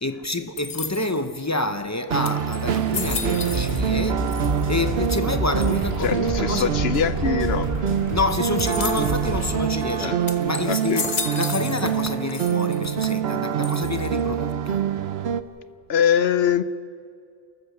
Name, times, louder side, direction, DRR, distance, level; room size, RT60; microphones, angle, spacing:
voice 1, 0.0-4.2 4.7-6.7 8.1-14.8, left 2 dB, 20° left, 0.8 m, -28 dB
sound 1, 0.6-1.3 1.9-2.0 2.2-4.0 4.3-4.9 5.6-6.1 8.6-9.3 9.8-9.9 10.3-12.0 12.3-12.9 13.6-14.2, left 5 dB, 45° left, 1.0 m, -33 dB
sound 2, 2.1-15.4, right 8 dB, 80° right, 1.0 m, -25 dB
sound 3, 3.0-9.5, equal, 15° right, 3.8 m, -29 dB
voice 2, 6.0-7.7 10.0-10.2 10.7-11.0 15.9-16.6, left 8 dB, 80° left, 1.0 m, -23 dB
28.0 x 14.5 x 6.7 m
omnidirectional pair, 1.0 m